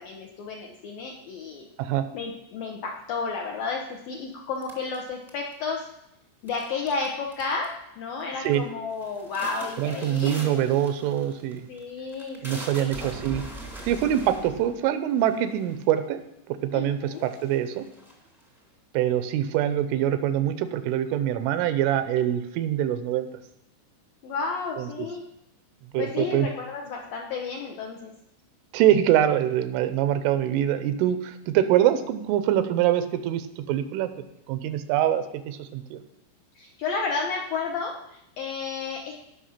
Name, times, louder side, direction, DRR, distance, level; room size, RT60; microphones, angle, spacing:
voice 1, 0.0-1.7 2.1-5.8 6.4-10.7 11.7-13.0 16.7-17.3 24.2-25.2 26.0-28.1 36.6-39.1, left 4 dB, 75° left, 0 dB, 2.1 m, -32 dB
ice Crack, 4.6-5.7 6.5-7.0 7.3-7.8 8.2-8.6 8.9-16.0 16.6-16.7 17.0-18.6, right 1 dB, ahead, 0.6 m, -42 dB
voice 2, 9.8-11.7 12.4-13.4 13.8-16.2 16.5-17.9 18.9-23.3 24.8-25.1 25.9-26.5 28.7-36.0, right 11 dB, 90° right, 11 dB, 3.4 m, -24 dB
18.0 x 6.1 x 5.8 m, 0.83 s
omnidirectional pair, 5.5 m